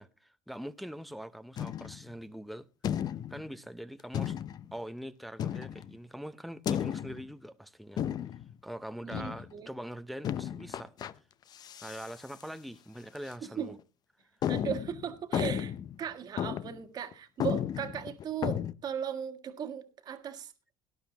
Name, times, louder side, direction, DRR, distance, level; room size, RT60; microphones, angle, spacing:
voice 1, 0.0-2.7 3.3-4.4 4.7-8.0 8.6-11.0 11.8-13.7, equal, ahead, 0.7 m, -43 dB
sound 1, 1.6-2.1 2.8-3.5 4.1-4.7 5.4-6.0 6.7-7.3 8.0-8.5 9.1-9.5 10.2-11.1 11.5-12.1 12.4-12.5 13.2-13.3 13.8-13.9 14.4-16.0 16.4-16.8 17.1-17.2 17.4-18.7, left 10 dB, 45° left, 0.6 m, -34 dB
voice 2, 9.0-9.7 13.6-13.7 14.5-15.7 16.0-20.5, right 8 dB, 45° right, 1.6 m, -37 dB
18.0 x 11.0 x 2.9 m
supercardioid pair, 95°, 10 cm